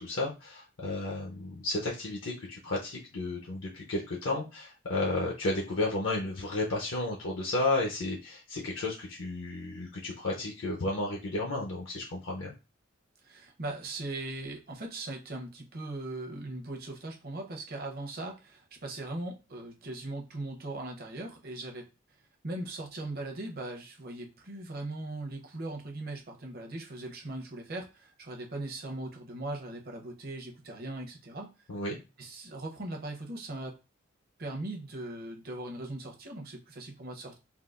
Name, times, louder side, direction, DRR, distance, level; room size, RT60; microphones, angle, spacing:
voice 1, 0.0-12.5 31.7-32.0, left 2 dB, 65° left, -1 dB, 0.6 m, -32 dB
voice 2, 13.2-21.9 22.4-31.5 32.2-33.8 34.4-37.4, right 2 dB, 45° right, 2 dB, 0.7 m, -39 dB
3.6 x 2.3 x 2.4 m, 0.29 s
head